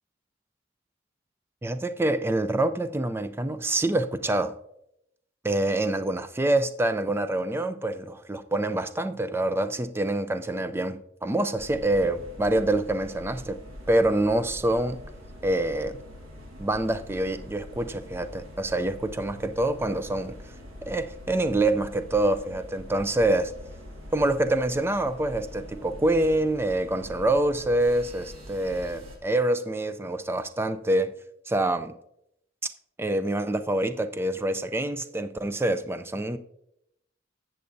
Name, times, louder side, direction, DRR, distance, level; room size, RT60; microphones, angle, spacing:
voice 1, 1.6-4.5 5.4-13.6 13.9-15.0 15.4-16.0 16.6-20.4 20.8-23.5 24.1-31.1 31.5-31.9 33.0-36.4, right 1 dB, 10° right, 10 dB, 0.4 m, -26 dB
sound 1, 11.6-29.2, equal, 85° right, 1.5 m, -44 dB
13.5 x 7.7 x 2.6 m, 0.79 s
head